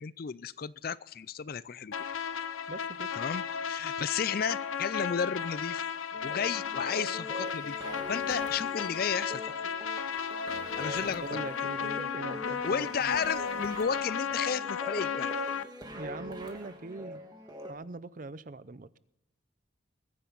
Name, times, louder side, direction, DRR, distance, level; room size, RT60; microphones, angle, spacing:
voice 1, 0.0-1.9 3.2-5.8 6.2-7.8 8.1-9.4 10.8-11.4 12.6-15.3, left 6 dB, 45° left, 19 dB, 0.4 m, -33 dB
sound 1, 1.9-15.6, left 7 dB, 90° left, 0.7 m, -34 dB
voice 2, 2.7-3.1 11.0-13.2 15.9-17.2 17.7-19.0, right 3 dB, 40° right, 16 dB, 0.5 m, -42 dB
sound 2, 6.1-17.7, equal, 20° right, 1.8 m, -43 dB
21.5 x 10.0 x 4.0 m, 0.86 s
head